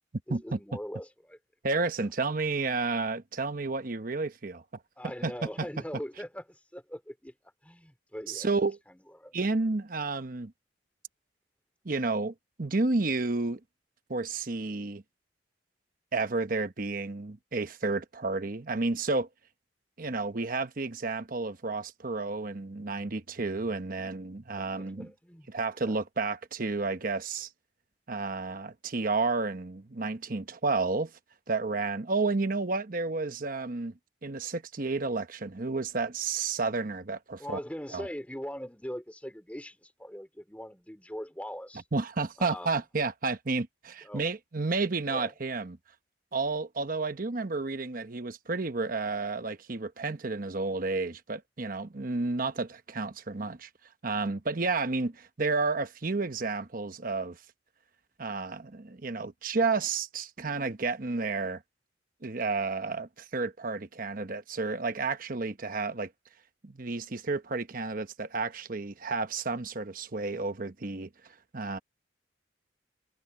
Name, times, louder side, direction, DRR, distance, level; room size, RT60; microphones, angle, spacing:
voice 1, 0.3-1.4 5.0-7.3 7.6-8.5 9.2-9.4 24.8-25.5 25.8-26.0 37.4-41.8 42.4-42.8 44.0-44.3 45.1-45.3, equal, 10° left, 2.8 m, -41 dB
voice 2, 1.6-4.6 5.2-5.3 8.3-8.8 9.3-10.5 11.8-13.6 14.1-15.0 16.1-19.3 20.0-25.1 25.5-27.5 28.1-31.1 31.5-33.9 34.2-37.6 37.9-38.1 41.9-45.8 46.3-53.7 54.0-57.4 58.2-61.6 62.2-66.1 66.6-71.8, right 3 dB, 50° right, 1.0 m, -31 dB
head